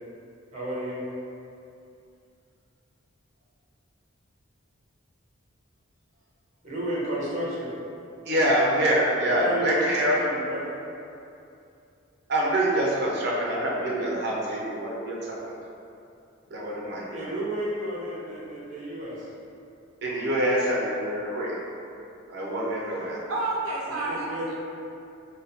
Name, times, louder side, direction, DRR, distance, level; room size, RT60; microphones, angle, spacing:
voice 1, 0.5-1.0 6.6-7.7 9.3-10.7 17.1-19.3 23.9-24.6, right 1 dB, 40° right, -7 dB, 1.0 m, -32 dB
voice 2, 8.3-10.2 12.3-15.4 16.5-17.3 20.0-21.6 22.3-23.2, right 1 dB, 55° right, -4 dB, 0.7 m, -25 dB
voice 3, 23.3-24.5, right 2 dB, 90° right, -3 dB, 0.5 m, -30 dB
3.7 x 2.2 x 4.1 m, 2.6 s
head